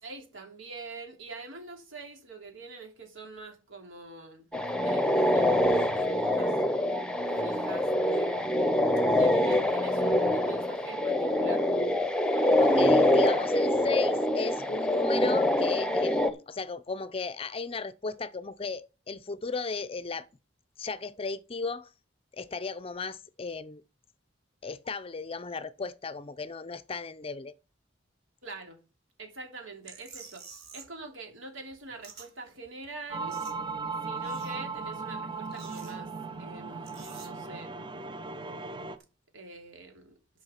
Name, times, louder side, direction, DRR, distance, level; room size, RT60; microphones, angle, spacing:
voice 1, 0.0-4.4 4.8-6.5 7.4-8.5 9.1-11.7 12.3-12.6 28.4-28.8 29.2-30.5 30.7-33.4 34.0-36.1 36.4-37.7 39.3-40.2, right 3 dB, 90° right, 3.1 m, -45 dB
sound 1, 4.5-16.3, left 1 dB, 5° left, 0.9 m, -25 dB
voice 2, 12.6-20.3 20.8-21.9 22.3-23.8 24.6-27.5, left 4 dB, 30° left, 0.5 m, -36 dB
sound 2, 29.8-31.0 31.3-32.3 32.6-32.7 33.0-33.9 34.1-34.9 35.4-36.4 36.8-37.3, right 5 dB, 55° right, 3.0 m, -49 dB
sound 3, 33.1-39.0, right 4 dB, 25° right, 0.7 m, -37 dB
11.0 x 5.5 x 5.7 m
head